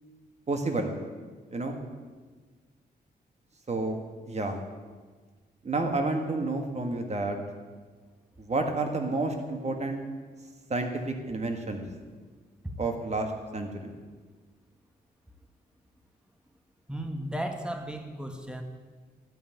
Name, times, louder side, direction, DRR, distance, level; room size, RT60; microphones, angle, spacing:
voice 1, 0.5-0.9 1.5-1.8 3.7-4.0 4.3-4.6 5.6-7.4 8.4-10.0 10.7-11.8 12.8-13.9, right 2 dB, 40° right, 4 dB, 1.8 m, -30 dB
voice 2, 16.9-18.6, right 1 dB, 5° right, 4 dB, 1.6 m, -35 dB
12.5 x 5.6 x 9.3 m, 1.5 s
cardioid pair, 80°, 17 cm